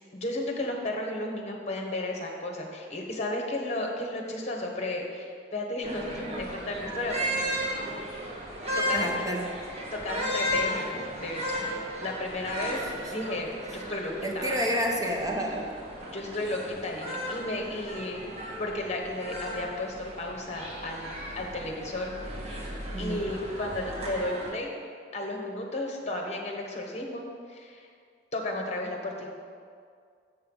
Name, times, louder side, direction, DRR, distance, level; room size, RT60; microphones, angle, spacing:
voice 1, 0.1-7.5 8.8-9.2 9.9-11.7 12.0-12.8 13.1-14.6 16.0-18.2 18.6-22.1 22.5-24.7 25.1-27.9 28.3-29.3, left 1 dB, 40° left, 1 dB, 1.2 m, -33 dB
sound 1, 5.8-24.5, equal, 35° right, 1.4 m, -35 dB
voice 2, 8.9-9.4 14.2-15.7 22.9-23.2, equal, 20° right, 0 dB, 1.0 m, -29 dB
7.0 x 6.6 x 5.5 m, 2.2 s
head